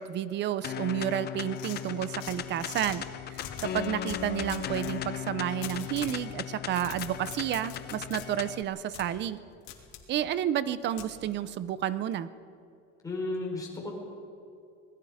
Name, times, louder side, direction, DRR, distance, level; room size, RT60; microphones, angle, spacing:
voice 1, 0.0-9.4 10.1-12.3, right 11 dB, 30° right, 15 dB, 0.7 m, -31 dB
sound 1, 0.6-8.6, left 11 dB, 30° left, 0.7 m, -37 dB
sound 2, 1.6-3.0 3.3-5.0 5.6-6.2 6.6-8.3 8.9-9.1 9.7-10.0 11.0-11.1, left 10 dB, 70° left, 3.1 m, -42 dB
voice 2, 13.0-13.9, left 2 dB, 10° left, -2 dB, 4.7 m, -33 dB
27.0 x 20.5 x 5.0 m, 2.6 s
cardioid pair, 160°, 34 cm